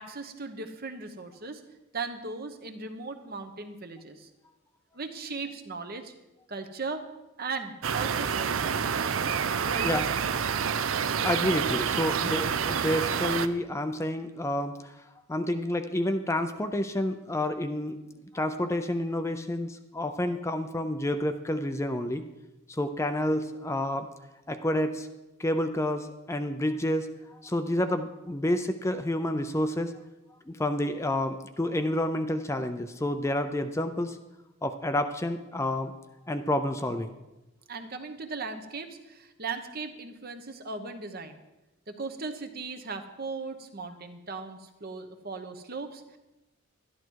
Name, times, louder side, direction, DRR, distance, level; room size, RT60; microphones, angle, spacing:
voice 1, 0.0-1.6 1.9-4.3 4.9-6.1 6.5-7.1 7.4-8.8 9.6-10.1 37.7-41.4 41.9-46.2, right 4 dB, 45° right, 6 dB, 1.0 m, -38 dB
sound 1, 7.8-13.5, right 7 dB, 75° right, 0.5 m, -28 dB
voice 2, 10.9-15.0 15.3-18.0 18.3-22.2 22.7-24.1 24.5-25.1 25.4-29.9 30.5-34.2 34.6-35.9 36.3-37.1, left 1 dB, 15° left, 8 dB, 0.5 m, -29 dB
12.0 x 11.5 x 4.6 m, 1.0 s
head